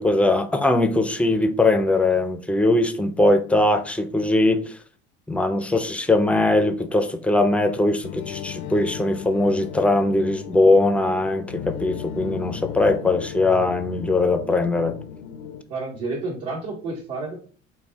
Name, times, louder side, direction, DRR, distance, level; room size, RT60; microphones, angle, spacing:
voice 1, 0.0-4.6 5.3-15.0, left 2 dB, 5° left, 9 dB, 0.3 m, -20 dB
sound 1, 8.0-15.6, left 9 dB, 85° left, 0.5 m, -36 dB
voice 2, 15.7-17.3, right 3 dB, 70° right, -5 dB, 1.2 m, -30 dB
3.9 x 2.3 x 3.4 m, 0.41 s
hypercardioid pair, 70°, 36 cm